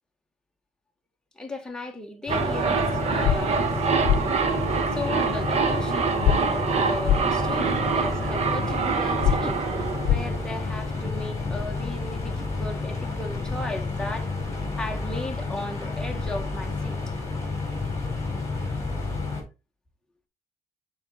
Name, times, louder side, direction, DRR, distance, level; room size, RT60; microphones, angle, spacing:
voice 1, 1.4-3.9 4.9-14.3 14.7-17.0, left 2 dB, 5° left, 1.4 m, -36 dB
sound 1, 2.3-19.4, left 3 dB, 20° left, 4.2 m, -30 dB
sound 2, 2.3-11.1 11.4-11.5, right 5 dB, 55° right, 1.1 m, -26 dB
sound 3, 3.2-3.4 4.0-4.2 6.2-6.4 7.0-7.2 9.2-9.4 10.0-10.2, left 11 dB, 75° left, 0.5 m, -20 dB
8.0 x 4.5 x 4.0 m
cardioid pair, 110°, 13 cm